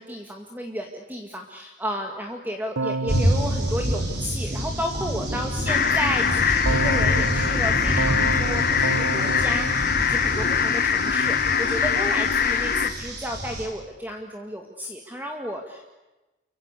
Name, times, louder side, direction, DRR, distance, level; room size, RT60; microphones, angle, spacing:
voice 1, 0.0-16.0, equal, 10° right, 3 dB, 1.9 m, -33 dB
Keyboard (musical), 2.8-5.1 6.7-10.9, right 3 dB, 85° right, 1.0 m, -31 dB
sound 1, 3.1-13.7, equal, 55° right, 6.5 m, -28 dB
sound 2, 5.7-12.9, left 7 dB, 45° left, 1.6 m, -23 dB
29.5 x 24.0 x 8.3 m, 1.1 s
head